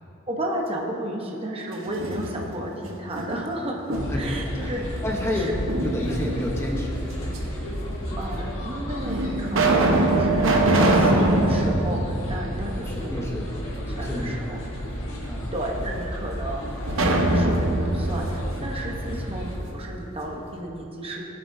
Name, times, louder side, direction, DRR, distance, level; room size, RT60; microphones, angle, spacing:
voice 1, 0.3-4.8 5.3-5.5 8.2-13.5 13.9-14.6 15.5-21.2, right 1 dB, 30° right, -1 dB, 0.9 m, -33 dB
sound 1, 1.7-2.7 3.1-4.4 5.7-6.5 7.3-7.4 8.3-8.4 9.0-13.1 13.4-13.5 16.9-19.7, right 2 dB, 70° right, 1.0 m, -23 dB
sound 2, 3.9-19.6, equal, 80° left, 2.0 m, -32 dB
voice 2, 4.1-7.4 12.8-13.6 13.9-14.6 15.3-15.5 19.0-19.4, left 1 dB, 15° left, -1 dB, 0.9 m, -30 dB
16.0 x 8.8 x 2.7 m, 2.8 s
head